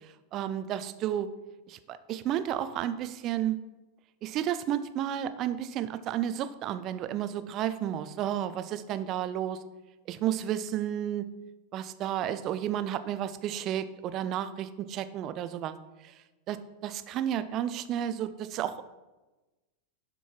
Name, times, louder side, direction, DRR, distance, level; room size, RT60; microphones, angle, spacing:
voice 1, 0.3-1.3 1.7-3.6 4.2-9.6 10.1-11.2 11.7-15.8 16.0-16.1 16.5-18.9, right 11 dB, 35° right, 12 dB, 0.6 m, -32 dB
11.5 x 5.4 x 4.6 m, 1.1 s
figure-of-eight pair, 90°, 0 cm